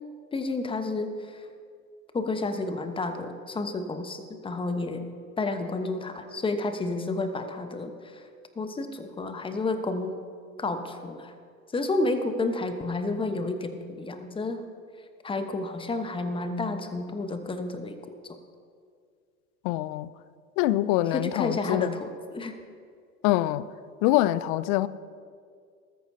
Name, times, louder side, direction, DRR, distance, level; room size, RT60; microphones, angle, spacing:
voice 1, 0.3-1.4 2.1-5.1 5.4-8.2 8.6-10.1 10.6-11.3 11.7-14.6 15.2-18.0 21.1-22.6, left 2 dB, 10° left, 1.1 m, -30 dB
voice 2, 19.6-20.1 20.6-22.0 23.2-23.7 24.0-24.9, left 15 dB, 40° left, 0.5 m, -24 dB
19.5 x 13.5 x 2.8 m
figure-of-eight pair, 90°, 44 cm